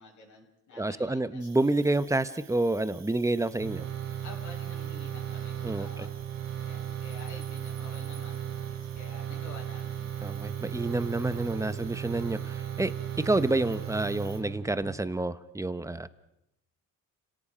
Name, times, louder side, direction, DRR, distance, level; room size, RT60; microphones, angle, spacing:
voice 1, 0.0-1.8 4.2-6.1 6.6-8.5 8.9-10.1, left 3 dB, 60° left, -1 dB, 6.7 m, -49 dB
voice 2, 0.8-3.9 5.6-6.1 10.2-12.9 13.2-16.1, right 2 dB, 10° right, 13 dB, 0.9 m, -28 dB
Cricket, 1.4-14.4, right 7 dB, 55° right, 3.1 m, -55 dB
sound 1, 3.6-14.9, right 9 dB, 85° right, 5.8 m, -36 dB
29.5 x 18.0 x 5.1 m, 0.82 s
cardioid pair, 110°, 34 cm